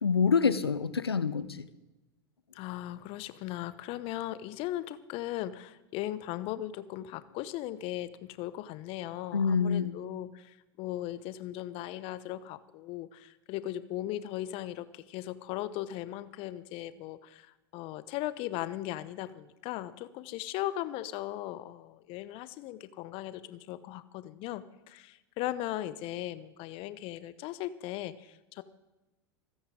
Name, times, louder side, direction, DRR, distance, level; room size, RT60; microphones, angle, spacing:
voice 1, 0.0-1.6 9.3-10.0, left 6 dB, 90° left, 15 dB, 0.7 m, -26 dB
voice 2, 2.5-28.6, left 14 dB, 45° left, 15 dB, 0.8 m, -38 dB
27.5 x 9.7 x 3.8 m, 1.1 s
hypercardioid pair, 90°, 13 cm